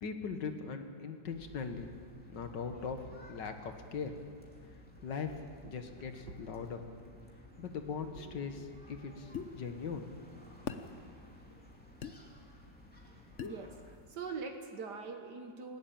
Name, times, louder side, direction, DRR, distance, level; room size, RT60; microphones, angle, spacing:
voice 1, 0.0-1.9 2.3-3.0 3.3-4.2 5.0-5.3 5.6-6.8 7.6-10.3, left 5 dB, 85° left, 6 dB, 2.1 m, -40 dB
sound 1, 1.3-14.0, left 1 dB, 5° left, 2.5 m, -56 dB
voice 2, 8.1-8.7 13.4-15.8, right 4 dB, 70° right, 5 dB, 1.9 m, -44 dB
sound 2, 9.3-9.5 10.7-10.9 12.0-12.2 13.4-13.6, left 7 dB, 50° left, 1.1 m, -39 dB
19.5 x 16.5 x 8.9 m, 2.3 s
omnidirectional pair, 1.9 m